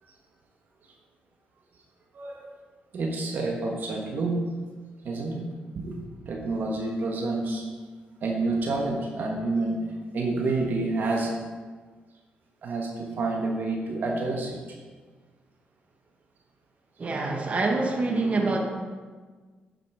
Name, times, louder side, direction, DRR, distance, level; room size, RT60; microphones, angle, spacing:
voice 1, 2.1-2.5 2.9-4.4 5.0-5.4 5.7-6.0 6.2-7.6 8.2-9.8 10.1-11.3 12.6-14.6, right 3 dB, 60° right, 0 dB, 1.3 m, -28 dB
voice 2, 17.0-18.6, right 3 dB, 40° right, 1 dB, 1.5 m, -25 dB
9.0 x 5.8 x 4.9 m, 1.4 s
cardioid pair, 85°, 4 cm